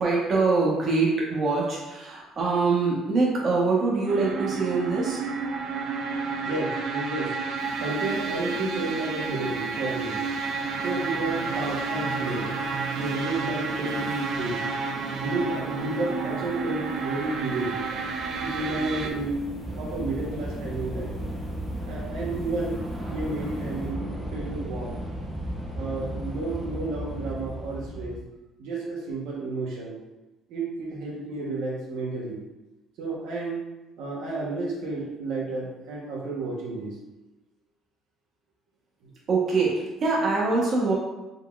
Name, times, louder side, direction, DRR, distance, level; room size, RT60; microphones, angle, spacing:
voice 1, 0.0-5.2 39.3-40.9, right 3 dB, 40° right, -4 dB, 1.0 m, -24 dB
sound 1, 4.1-19.1, right 4 dB, 55° right, 0.4 m, -31 dB
voice 2, 6.4-7.3 7.8-10.4 10.8-12.5 12.9-14.6 15.1-17.8 18.4-19.5 19.7-21.1 21.9-25.0 25.7-28.2 28.6-30.0 30.5-32.4 33.0-33.6 34.0-36.9 39.0-39.1, right 2 dB, 75° right, -4 dB, 0.9 m, -31 dB
sound 2, 7.6-23.9, equal, 35° left, 1.3 m, -44 dB
Train / Subway metro underground, 16.1-28.2, equal, 10° right, 0.7 m, -35 dB
3.8 x 3.5 x 2.3 m, 1.0 s
cardioid pair, 140°, 0 cm